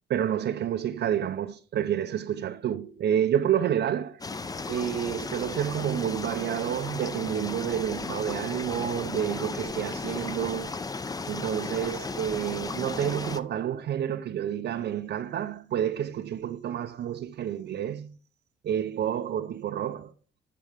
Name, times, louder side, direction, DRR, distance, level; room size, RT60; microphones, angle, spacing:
voice 1, 0.1-4.2 4.7-10.7 11.3-18.1 18.6-20.1, right 10 dB, 60° right, 0.5 m, -29 dB
sound 1, 4.2-13.4, left 3 dB, 20° left, 0.5 m, -35 dB
10.0 x 4.1 x 4.9 m
cardioid pair, 90°, 20 cm